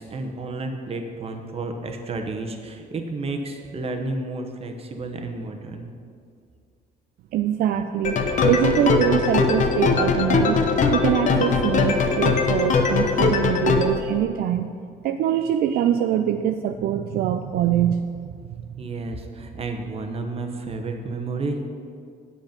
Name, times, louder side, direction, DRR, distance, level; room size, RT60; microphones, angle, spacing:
voice 1, 0.0-5.9 9.0-9.1 18.8-21.6, right 3 dB, 35° right, 4 dB, 1.0 m, -31 dB
voice 2, 7.3-10.6 10.9-14.7 15.0-18.3, right 10 dB, 65° right, 8 dB, 0.4 m, -23 dB
sound 1, 8.0-13.9, left 4 dB, 45° left, 0.9 m, -21 dB
8.1 x 7.1 x 5.2 m, 2.3 s
cardioid pair, 110°, 17 cm